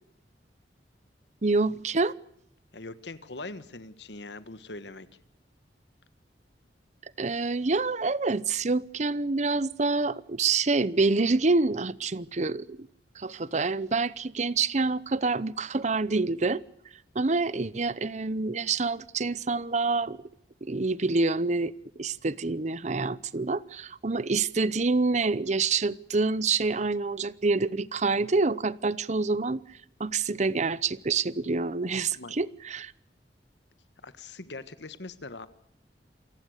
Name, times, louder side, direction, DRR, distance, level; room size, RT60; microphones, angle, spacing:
voice 1, 1.4-2.1 7.2-12.9 13.2-16.6 17.1-20.2 20.6-21.7 22.0-29.6 30.0-32.9, right 3 dB, 40° right, 0.8 m, -27 dB
voice 2, 2.7-5.1 32.1-32.3 34.0-35.5, left 2 dB, 85° left, 1.4 m, -41 dB
27.5 x 18.5 x 6.5 m
head